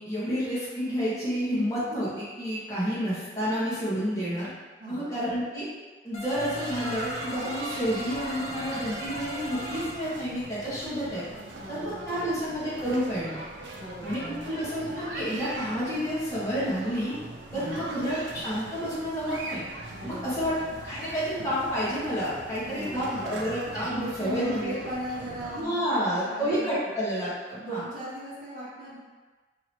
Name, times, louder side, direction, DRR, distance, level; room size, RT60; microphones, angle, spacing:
voice 1, 0.0-4.5 4.9-5.6 6.0-11.2 11.7-13.4 14.0-17.1 17.5-19.6 20.0-20.5 20.8-24.7 25.5-27.8, equal, 15° left, -11 dB, 1.5 m, -30 dB
voice 2, 4.8-5.2 11.6-12.5 13.7-14.5 17.5-17.9 19.9-20.6 22.7-23.3 23.8-27.0 27.6-29.0, right 1 dB, 45° right, -10 dB, 0.8 m, -38 dB
sound 1, 6.1-10.0, left 2 dB, 35° left, 0.8 m, -39 dB
sound 2, 6.3-25.6, right 2 dB, 90° right, 0.6 m, -40 dB
4.8 x 3.0 x 3.1 m, 1.3 s
head